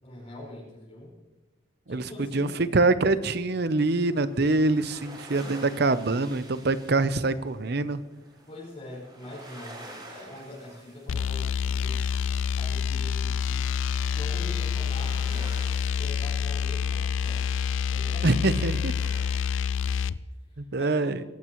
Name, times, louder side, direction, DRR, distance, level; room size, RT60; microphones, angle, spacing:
voice 1, 0.0-1.1 1.9-2.7 8.5-12.2 12.6-13.7 14.1-15.4 15.9-17.5 17.8-18.3 20.5-21.2, left 1 dB, 35° left, -5 dB, 5.0 m, -43 dB
voice 2, 2.3-8.0 18.2-18.9 20.6-21.2, right 2 dB, 55° right, 13 dB, 0.7 m, -24 dB
sound 1, 4.0-19.4, right 1 dB, 25° right, 4.3 m, -49 dB
sound 2, 11.1-20.2, left 7 dB, 85° left, 0.4 m, -27 dB
23.0 x 12.0 x 3.1 m, 1.2 s
head